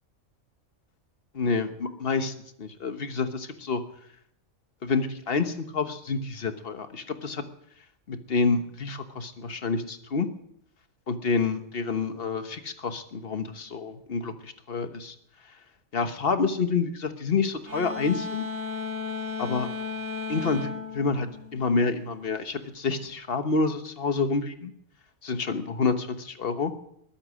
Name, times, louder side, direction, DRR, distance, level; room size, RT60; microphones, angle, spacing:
voice 1, 1.3-2.3 2.6-3.8 4.8-7.4 8.1-10.3 11.1-15.1 15.9-18.5 19.4-19.7 20.3-24.7 25.2-26.7, left 4 dB, 45° left, 9 dB, 1.3 m, -28 dB
sound 1, 17.7-22.1, left 4 dB, 80° right, 2.5 m, -35 dB
21.0 x 8.8 x 6.4 m, 0.73 s
omnidirectional pair, 1.4 m